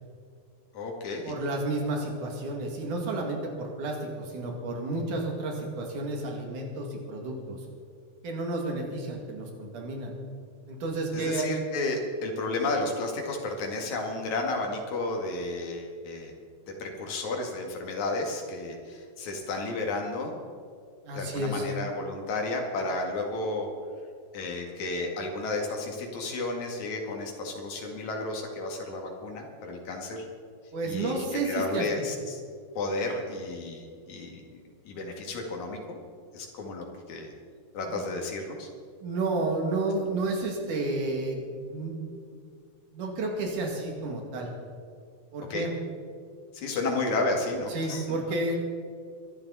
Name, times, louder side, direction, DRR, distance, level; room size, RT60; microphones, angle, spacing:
voice 1, 0.7-1.3 11.1-16.3 16.8-20.4 21.1-23.7 24.3-30.2 30.8-32.4 32.7-34.5 34.8-36.0 36.3-37.3 37.7-38.7 45.5-45.7 46.5-48.0, left 2 dB, 70° left, 1 dB, 3.4 m, -32 dB
voice 2, 1.3-7.6 8.2-10.1 10.7-11.6 21.0-21.7 30.7-31.9 37.9-38.0 39.0-42.4 42.9-44.5 45.3-45.7 47.7-48.6, right 2 dB, 85° right, 1 dB, 3.8 m, -31 dB
23.5 x 11.5 x 4.2 m, 2.2 s
omnidirectional pair, 3.5 m